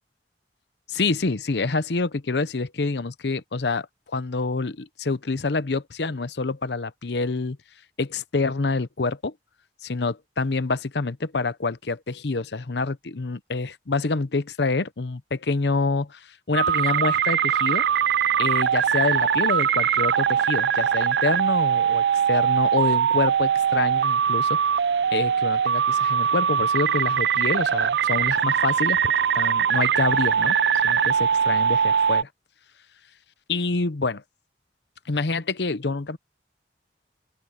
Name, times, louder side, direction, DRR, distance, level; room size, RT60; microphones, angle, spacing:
voice 1, 0.9-7.6 8.0-9.3 9.8-17.9 18.4-24.6 25.1-30.6 30.8-32.3 33.5-34.2 35.1-36.2, left 3 dB, 70° left, 0.8 m, -27 dB
sound 1, 16.5-32.2, right 8 dB, 70° right, 0.3 m, -22 dB
open air
head